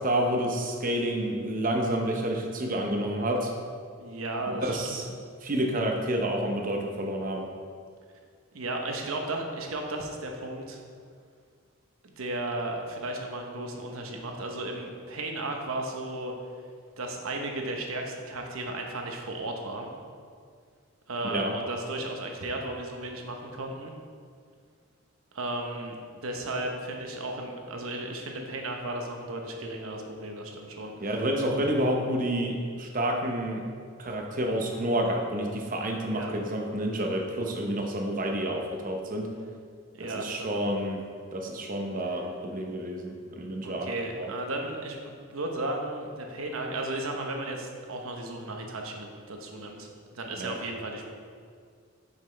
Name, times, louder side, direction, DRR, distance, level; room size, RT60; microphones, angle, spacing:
voice 1, 0.0-3.5 4.5-5.0 5.4-7.5 21.2-21.5 31.0-33.6 34.0-39.3 40.0-41.0 41.3-44.3 50.4-50.5, right 1 dB, 40° right, 2 dB, 0.8 m, -29 dB
voice 2, 4.0-4.8 8.5-10.8 12.0-16.3 17.0-19.9 21.1-23.9 25.3-31.1 36.1-36.3 39.9-40.7 43.6-51.0, right 2 dB, 75° right, 2 dB, 0.9 m, -35 dB
7.5 x 5.8 x 3.3 m, 2.1 s
head